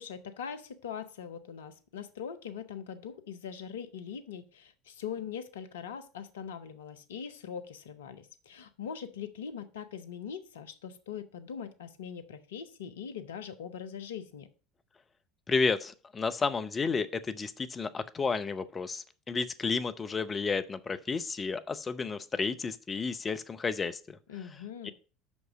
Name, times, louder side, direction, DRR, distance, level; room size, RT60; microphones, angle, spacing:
voice 1, 0.0-14.5 24.3-24.9, left 7 dB, 70° left, 10 dB, 0.7 m, -41 dB
voice 2, 15.5-24.9, left 4 dB, 25° left, 11 dB, 0.7 m, -32 dB
6.1 x 5.3 x 6.1 m, 0.38 s
figure-of-eight pair, 65°, 0 cm